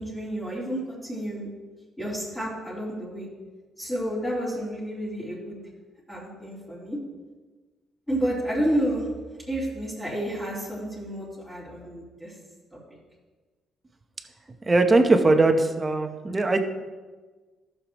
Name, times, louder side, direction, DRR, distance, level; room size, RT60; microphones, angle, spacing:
voice 1, 0.0-1.5 2.0-3.3 3.8-5.6 6.1-7.0 8.1-9.0 9.5-12.3, equal, 10° left, -8 dB, 3.1 m, -30 dB
voice 2, 14.7-16.6, right 2 dB, 20° right, 5 dB, 0.9 m, -20 dB
15.0 x 6.7 x 3.1 m, 1.3 s
cardioid pair, 130°, 0 cm